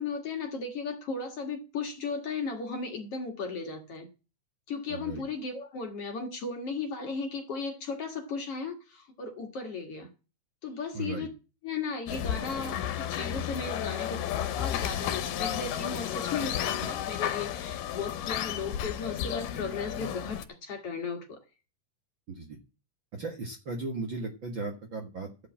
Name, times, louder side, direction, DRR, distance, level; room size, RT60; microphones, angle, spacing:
voice 1, 0.0-4.1 4.7-10.1 10.6-11.3 11.6-21.4, left 4 dB, 50° left, 2.5 m, -36 dB
voice 2, 4.9-5.2 10.9-11.3 22.3-22.6 23.1-25.5, right 3 dB, 45° right, 1.9 m, -36 dB
sound 1, 12.1-20.4, left 10 dB, 85° left, 2.5 m, -32 dB
13.0 x 5.3 x 8.5 m
omnidirectional pair, 3.7 m